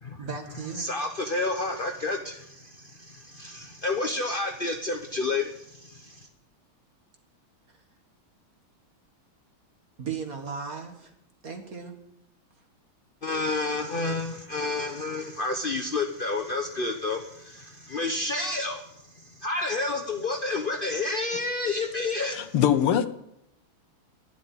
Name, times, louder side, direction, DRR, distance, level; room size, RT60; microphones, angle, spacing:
voice 1, 0.2-0.9 10.0-11.1 11.4-11.9, right 6 dB, 40° right, 4 dB, 2.2 m, -36 dB
voice 2, 0.7-6.3 13.2-22.4, left 3 dB, 55° left, 4 dB, 0.5 m, -30 dB
voice 3, 22.3-23.1, left 10 dB, 90° left, 11 dB, 1.9 m, -22 dB
11.5 x 10.0 x 9.7 m, 0.82 s
omnidirectional pair, 2.4 m